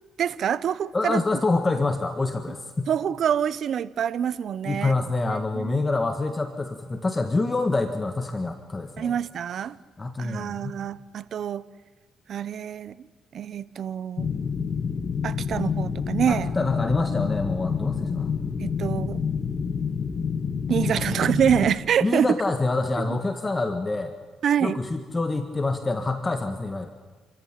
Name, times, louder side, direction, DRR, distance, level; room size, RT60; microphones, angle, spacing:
voice 1, 0.2-1.2 2.9-5.0 5.3-5.8 9.0-9.8 10.2-11.6 12.3-13.0 13.3-14.3 15.2-16.5 18.6-19.2 20.7-22.3 24.4-24.8, right 8 dB, 65° right, 18 dB, 0.8 m, -26 dB
voice 2, 0.9-2.9 4.6-9.2 10.0-10.8 16.3-18.3 22.0-24.1 24.6-26.9, left 3 dB, 25° left, 7 dB, 1.6 m, -26 dB
sound 1, 14.2-21.7, left 6 dB, 50° left, 1.9 m, -28 dB
28.0 x 14.5 x 9.9 m, 1.4 s
cardioid pair, 90°, 0 cm